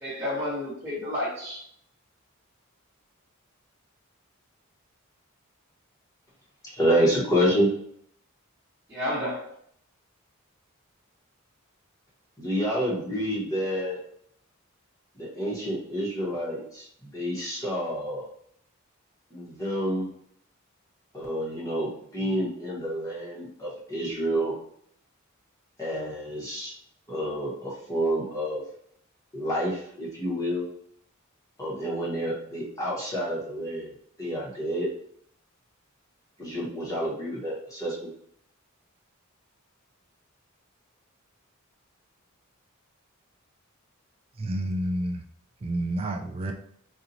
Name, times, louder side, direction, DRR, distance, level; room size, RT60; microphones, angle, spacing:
voice 1, 0.0-1.6 8.9-9.5, left 1 dB, 10° right, -10 dB, 1.2 m, -31 dB
voice 2, 6.7-7.7 12.4-14.0 15.2-18.2 19.3-20.1 21.1-24.5 25.8-26.7 27.1-28.6 29.3-30.7 31.6-33.9 34.2-34.9 36.4-38.1, equal, 15° left, -6 dB, 1.3 m, -28 dB
voice 3, 44.4-45.2 45.6-46.5, right 1 dB, 25° right, 5 dB, 0.3 m, -29 dB
4.1 x 2.7 x 2.8 m, 0.64 s
head